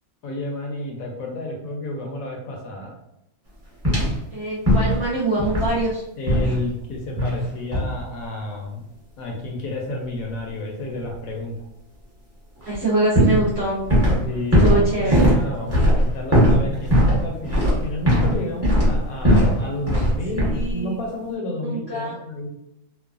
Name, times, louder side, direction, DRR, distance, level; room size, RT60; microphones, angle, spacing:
voice 1, 0.2-2.9 6.2-8.8 9.2-11.5 14.2-14.7 15.0-22.5, left 2 dB, 70° left, 0 dB, 1.0 m, -31 dB
sound 1, 3.8-4.2 4.6-5.1 5.4-5.8 6.3-6.6 7.2-7.4 7.7-7.9 12.6-12.8 13.1-14.2 14.5-18.4 18.6-19.6 19.9-20.1 20.4-20.7, equal, 10° right, 0.8 m, -18 dB
voice 2, 4.3-6.0 12.7-13.8 14.6-15.2 20.3-21.0 21.6-22.1, right 2 dB, 60° right, -6 dB, 0.7 m, -24 dB
3.1 x 2.1 x 2.3 m, 0.84 s
omnidirectional pair, 1.7 m